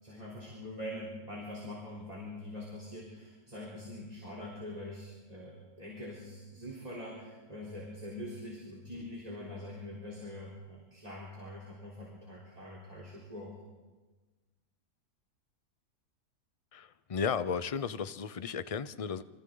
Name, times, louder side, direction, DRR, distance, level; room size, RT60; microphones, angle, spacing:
voice 1, 0.0-13.6, left 1 dB, 25° right, -3 dB, 3.9 m, -44 dB
voice 2, 16.7-19.2, left 6 dB, 45° left, 13 dB, 0.4 m, -34 dB
28.0 x 24.0 x 3.9 m, 1.3 s
omnidirectional pair, 1.6 m